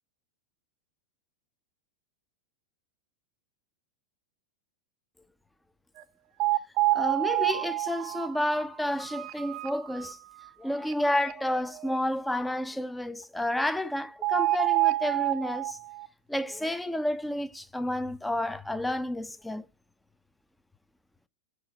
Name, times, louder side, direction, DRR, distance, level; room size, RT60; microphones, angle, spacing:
sound 1, 6.0-6.1 6.4-10.1 10.5-10.6 10.9-11.0 11.2-12.0 14.2-16.1, right 19 dB, 40° right, 0.6 m, -28 dB
voice 1, 6.9-10.2 10.6-15.8 16.3-19.7, left 1 dB, 5° left, 0.5 m, -30 dB
6.2 x 4.6 x 4.0 m
figure-of-eight pair, 90°, 0 cm